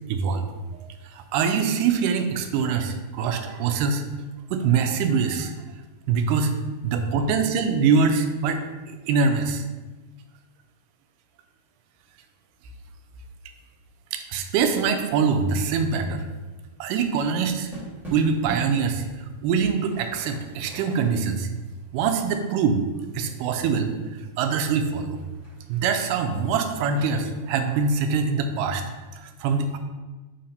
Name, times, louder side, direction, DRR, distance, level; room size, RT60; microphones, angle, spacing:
voice 1, 0.1-4.0 4.5-5.5 6.1-6.6 6.8-8.6 8.9-9.7 14.1-16.2 16.8-17.7 18.1-19.0 19.4-21.5 21.9-22.8 23.1-25.2 25.7-28.8 29.1-29.8, right 5 dB, 85° right, 7 dB, 2.1 m, -24 dB
sound 1, 16.7-23.6 24.0-24.1 24.4-25.9, right 1 dB, ahead, 0.8 m, -43 dB
4.6 x 4.3 x 5.2 m, 1.2 s
omnidirectional pair, 3.8 m